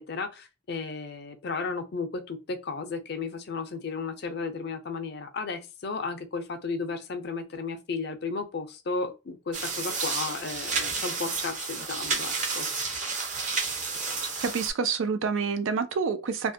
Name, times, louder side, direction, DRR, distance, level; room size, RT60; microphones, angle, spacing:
voice 1, 0.0-12.7, left 4 dB, 55° left, 0.5 m, -34 dB
sound 1, 9.5-14.7, right 4 dB, 40° right, 0.6 m, -31 dB
voice 2, 14.4-16.5, right 5 dB, 85° right, 0.4 m, -28 dB
2.3 x 2.1 x 2.6 m
head